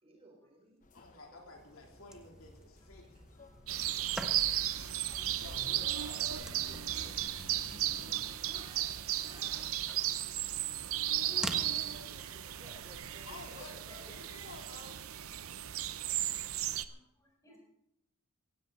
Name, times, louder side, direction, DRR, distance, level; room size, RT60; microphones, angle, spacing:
voice 1, 0.0-0.8 1.1-1.5 4.9-7.4 7.8-8.9 9.2-9.6 11.1-14.3, equal, 25° right, 2 dB, 3.4 m, -57 dB
sound 1, 0.8-8.3, left 1 dB, 35° left, 1.0 m, -53 dB
voice 2, 0.9-3.2 5.4-6.3 13.3-15.0, left 2 dB, 70° left, 0 dB, 3.5 m, -51 dB
sound 2, 1.6-12.0, right 1 dB, 5° right, 1.4 m, -48 dB
sound 3, 3.7-16.9, right 13 dB, 70° right, 0.7 m, -35 dB
voice 3, 7.4-7.8 8.5-8.7 9.5-9.6 9.9-10.4 10.7-12.0 14.0-14.2 15.9-16.0 16.7-17.6, equal, 15° left, -2 dB, 7.0 m, -57 dB
17.0 x 16.5 x 4.1 m, 0.82 s
head